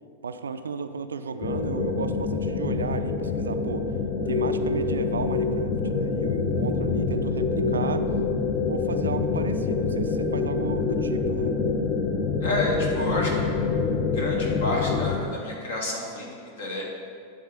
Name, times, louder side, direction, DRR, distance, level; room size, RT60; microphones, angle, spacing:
voice 1, 0.2-3.9 4.3-8.1 8.7-11.6, right 5 dB, 70° right, 9 dB, 0.4 m, -34 dB
sound 1, 1.4-15.2, left 4 dB, 35° left, 0.8 m, -26 dB
sound 2, 6.5-10.5, right 5 dB, 15° left, 1.4 m, -37 dB
voice 2, 12.4-13.6 14.1-16.8, left 1 dB, 65° left, -2 dB, 1.9 m, -30 dB
10.5 x 4.0 x 7.2 m, 2.2 s
figure-of-eight pair, 90°, 0 cm